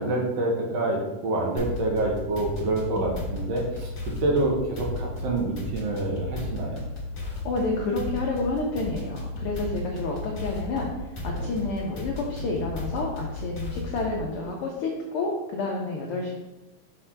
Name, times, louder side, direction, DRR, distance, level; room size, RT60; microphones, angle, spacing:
voice 1, 0.0-3.9 4.2-6.8 11.3-11.5, right 2 dB, 65° right, -1 dB, 1.9 m, -27 dB
sound 1, 1.6-14.2, left 2 dB, 40° left, 1.5 m, -34 dB
voice 2, 7.2-10.9 11.2-16.4, left 3 dB, 75° left, -1 dB, 1.3 m, -29 dB
6.0 x 3.3 x 5.8 m, 1.0 s
omnidirectional pair, 3.5 m